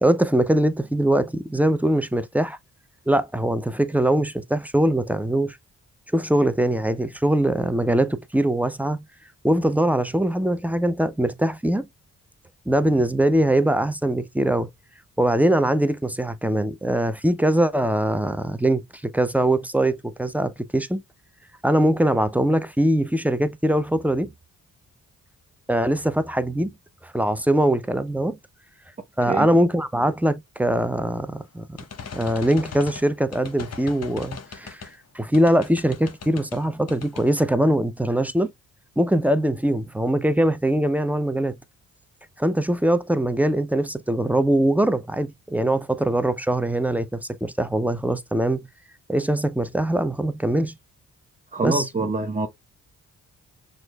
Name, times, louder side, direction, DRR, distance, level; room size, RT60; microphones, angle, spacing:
voice 1, 0.0-2.6 3.1-5.6 6.1-9.0 9.4-11.9 12.7-14.7 15.2-21.0 21.6-24.3 25.7-26.7 27.0-28.4 29.2-31.7 32.1-34.8 35.1-38.5 39.0-41.6 42.4-48.7 49.1-50.7 51.6-51.8, right 1 dB, 5° right, 0.5 m, -22 dB
sound 1, 31.8-34.9 35.3-36.6 36.9-37.3, left 5 dB, 45° left, 0.9 m, -39 dB
voice 2, 51.5-52.5, right 3 dB, 20° right, 0.8 m, -25 dB
6.1 x 2.6 x 2.2 m
supercardioid pair, 50°, 36 cm